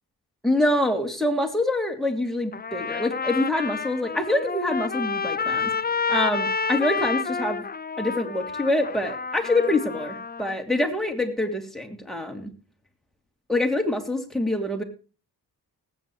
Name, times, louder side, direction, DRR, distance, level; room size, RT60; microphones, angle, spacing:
voice 1, 0.4-5.7 6.1-7.6 8.0-12.5 13.5-14.8, left 1 dB, ahead, 4 dB, 3.0 m, -25 dB
Trumpet, 2.5-10.6, left 5 dB, 25° left, 0.5 m, -29 dB
19.5 x 9.0 x 3.2 m, 0.35 s
cardioid pair, 50°, 41 cm